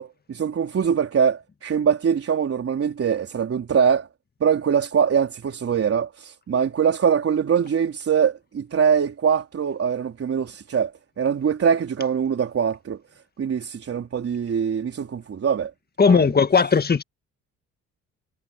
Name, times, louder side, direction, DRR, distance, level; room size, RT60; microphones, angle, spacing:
voice 1, 0.0-4.1 4.4-10.9 11.2-13.0 13.4-15.7 16.0-16.3, right 7 dB, 50° right, 4.0 m, -23 dB
voice 2, 16.0-17.0, left 5 dB, 30° left, 1.8 m, -17 dB
cardioid pair, 90°, 30 cm